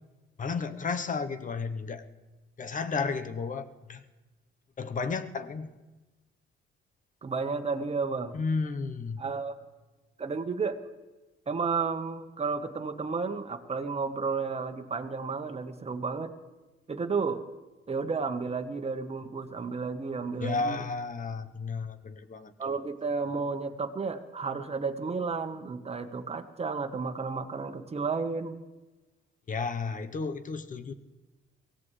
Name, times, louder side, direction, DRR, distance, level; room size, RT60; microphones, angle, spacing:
voice 1, 0.4-2.0 2.6-4.0 4.8-5.7 8.3-9.2 20.4-22.8 29.5-30.9, left 4 dB, 40° left, 10 dB, 1.0 m, -33 dB
voice 2, 7.2-8.3 9.2-9.6 10.2-10.8 11.5-16.3 16.9-17.4 17.9-20.9 22.6-28.6, right 4 dB, 30° right, 7 dB, 1.3 m, -32 dB
23.0 x 16.5 x 3.3 m, 1.2 s
cardioid pair, 90°, 20 cm